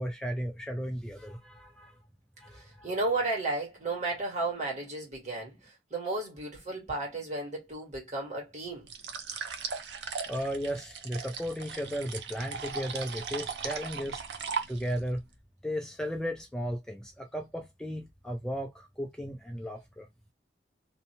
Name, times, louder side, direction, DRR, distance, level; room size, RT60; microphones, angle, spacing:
voice 1, 0.0-1.9 2.4-2.9 10.3-14.2 14.7-15.2 15.6-20.1, equal, 5° left, 0.3 m, -35 dB
voice 2, 2.5-8.9, right 2 dB, 45° right, 1.5 m, -33 dB
sound 1, 8.9-15.1, right 6 dB, 75° right, 0.6 m, -38 dB
2.7 x 2.1 x 2.8 m
head